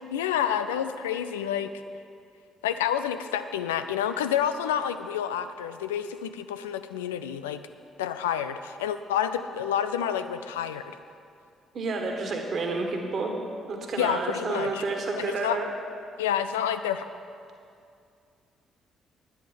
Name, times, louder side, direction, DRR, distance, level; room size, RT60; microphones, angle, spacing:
voice 1, 0.1-1.7 2.6-7.6 8.0-11.0 14.0-14.8 15.2-15.6 16.2-17.0, left 9 dB, 75° left, 10 dB, 0.3 m, -29 dB
voice 2, 11.7-13.4 13.7-15.7, right 3 dB, 50° right, 2 dB, 1.7 m, -30 dB
10.0 x 10.0 x 5.3 m, 2.4 s
figure-of-eight pair, 45°, 0 cm